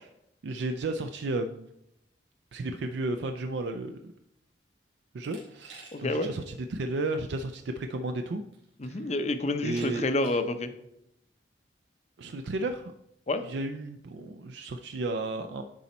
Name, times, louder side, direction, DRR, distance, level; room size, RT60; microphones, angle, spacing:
voice 1, 0.4-1.7 2.5-4.1 5.1-8.4 8.8-9.1 9.6-10.1 12.2-12.9 13.4-15.6, right 2 dB, 65° right, 7 dB, 0.4 m, -33 dB
Glass, 5.2-6.3 6.7-6.8 8.0-8.1 8.5-8.9 9.7-10.5, right 4 dB, 85° right, 2.8 m, -50 dB
voice 2, 5.9-6.3 8.8-10.7 13.3-13.5, left 2 dB, 35° left, 9 dB, 0.6 m, -28 dB
9.9 x 4.1 x 4.2 m, 0.82 s
head